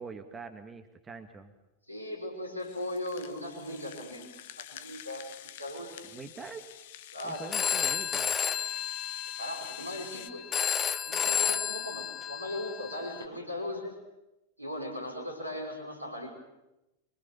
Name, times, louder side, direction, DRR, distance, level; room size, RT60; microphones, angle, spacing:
voice 1, 0.0-1.5 6.1-6.6 7.2-8.4, right 4 dB, 15° right, 7 dB, 1.9 m, -44 dB
voice 2, 1.9-4.3 4.6-6.1 7.1-7.7 9.4-10.5 11.0-13.9 14.6-16.3, left 1 dB, 85° right, 2 dB, 5.7 m, -38 dB
Rattle (instrument), 2.6-10.3, left 12 dB, 55° left, 1.1 m, -48 dB
Telephone, 7.4-13.2, left 8 dB, 20° left, 1.1 m, -32 dB
25.0 x 24.5 x 7.0 m, 0.97 s
figure-of-eight pair, 90°, 0 cm